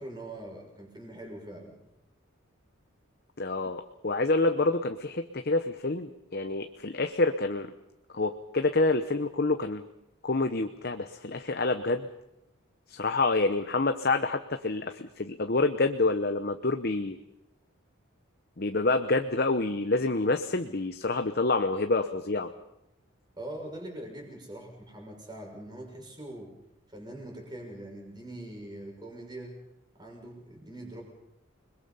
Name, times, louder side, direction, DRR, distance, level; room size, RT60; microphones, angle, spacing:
voice 1, 0.0-1.8 23.4-26.5 26.9-29.6 29.9-31.0, right 1 dB, 20° right, 1 dB, 6.0 m, -42 dB
voice 2, 3.4-7.7 8.1-9.8 10.2-12.1 12.9-17.2 18.6-22.5, left 3 dB, 45° left, 7 dB, 0.9 m, -27 dB
29.5 x 21.5 x 5.6 m, 0.86 s
head